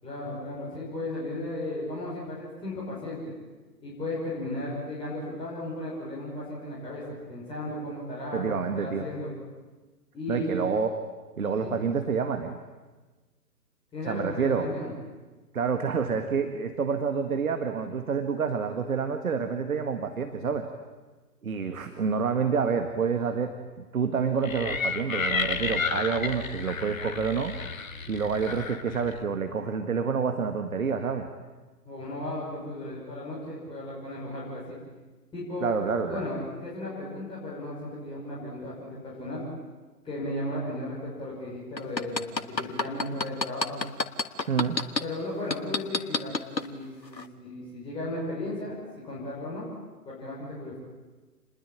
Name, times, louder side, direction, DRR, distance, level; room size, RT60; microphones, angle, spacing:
voice 1, 0.0-3.3 3.8-9.3 10.1-10.5 11.6-11.7 13.9-14.9 31.8-34.8 35.3-35.7 36.1-39.4 40.0-43.8 45.0-49.6 50.1-50.8, left 1 dB, 10° left, -7 dB, 6.0 m, -35 dB
voice 2, 8.3-9.1 10.3-10.9 11.4-12.6 14.1-14.7 15.5-20.7 21.4-23.5 23.9-27.5 28.1-31.3 35.6-36.3 44.5-44.8, right 6 dB, 55° right, 7 dB, 2.0 m, -28 dB
sound 1, 24.4-29.2, left 5 dB, 55° left, 1.8 m, -32 dB
sound 2, 41.8-45.0 45.5-46.7 47.1-47.2, left 3 dB, 85° left, 1.6 m, -27 dB
28.0 x 21.0 x 8.9 m, 1.3 s
figure-of-eight pair, 135°, 49 cm